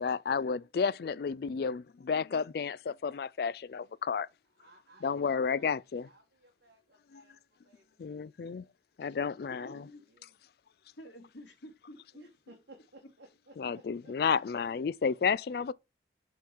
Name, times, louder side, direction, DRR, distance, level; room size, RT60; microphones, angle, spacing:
voice 1, 0.0-4.3 5.0-6.1 7.1-7.2 8.0-8.6 9.0-9.8 13.6-15.7, left 6 dB, 55° left, 0.3 m, -31 dB
voice 2, 4.6-7.4 7.6-8.1 9.3-10.4 12.1-14.1 14.7-15.0, right 2 dB, 75° right, 1.7 m, -60 dB
voice 3, 9.5-10.0 11.0-12.3, equal, 90° left, 2.3 m, -50 dB
6.9 x 3.8 x 4.5 m
head